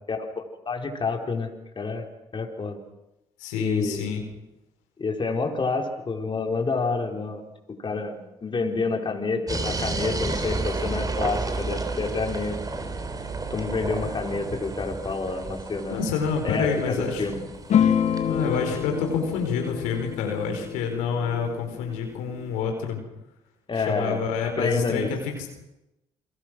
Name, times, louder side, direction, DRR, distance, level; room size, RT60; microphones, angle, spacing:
voice 1, 0.1-1.5 1.8-2.1 2.3-2.8 3.6-4.1 5.0-7.4 7.8-12.6 13.5-16.0 16.4-17.4 23.7-24.2 24.6-25.1, left 4 dB, 40° left, 3 dB, 4.4 m, -28 dB
voice 2, 3.4-4.2 14.4-14.6 15.9-17.4 18.2-23.0 23.7-25.5, left 6 dB, 90° left, 3 dB, 4.4 m, -28 dB
sound 1, 9.5-20.2, right 3 dB, 30° right, 3.9 m, -32 dB
sound 2, 17.7-22.6, left 8 dB, 65° left, 1.9 m, -27 dB
28.5 x 22.5 x 6.2 m, 0.93 s
supercardioid pair, 60°, 13 cm